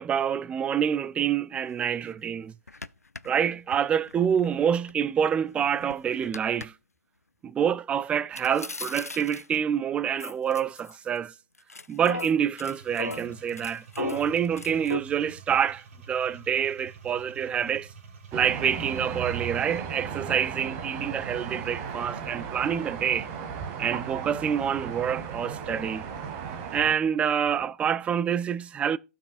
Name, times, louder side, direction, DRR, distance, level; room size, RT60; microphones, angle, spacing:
voice 1, 0.0-2.5 3.2-6.7 7.4-11.3 11.9-17.9 18.3-23.3 23.8-26.0 26.7-29.0, right 8 dB, 15° right, 0.3 m, -27 dB
sound 1, 1.7-1.8 2.1-2.2 2.7-4.9 5.4-6.7 8.3-9.6 10.2-11.3 11.6-15.0, left 3 dB, 90° left, 0.4 m, -38 dB
sound 2, 12.7-19.8, right 4 dB, 60° right, 3.8 m, -48 dB
sound 3, 18.3-26.9, right 6 dB, 35° right, 1.7 m, -36 dB
16.0 x 6.0 x 2.5 m
figure-of-eight pair, 115°, 8 cm